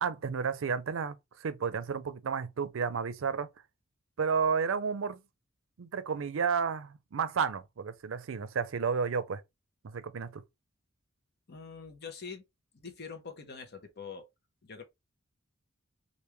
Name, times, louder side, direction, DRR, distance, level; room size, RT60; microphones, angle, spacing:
voice 1, 0.0-3.5 4.2-5.2 5.8-9.4 9.8-10.4, right 6 dB, 80° right, 0.5 m, -32 dB
voice 2, 11.5-12.4 12.7-14.2 14.6-14.8, left 5 dB, 55° left, 0.8 m, -44 dB
3.4 x 2.5 x 3.0 m
head